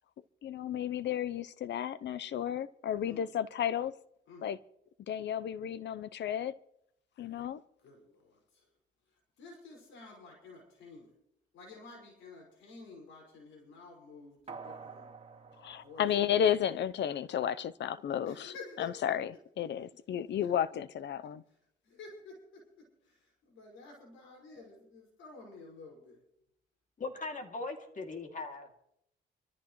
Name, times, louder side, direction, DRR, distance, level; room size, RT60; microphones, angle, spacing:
voice 1, 0.4-3.9 4.4-4.6 5.1-6.5 7.2-7.6 15.6-21.4, left 9 dB, 60° left, 0.7 m, -33 dB
voice 2, 7.8-8.7 9.4-11.1 11.5-15.1 15.8-16.1 16.7-16.8 18.3-18.9 20.4-20.5 21.8-26.2, left 4 dB, 80° left, 5.5 m, -51 dB
sound 1, 14.5-17.0 17.4-17.5, right 5 dB, 30° right, 2.1 m, -49 dB
voice 3, 27.0-28.7, left 3 dB, 40° left, 2.7 m, -39 dB
26.0 x 14.0 x 3.2 m
cardioid pair, 90°, 20 cm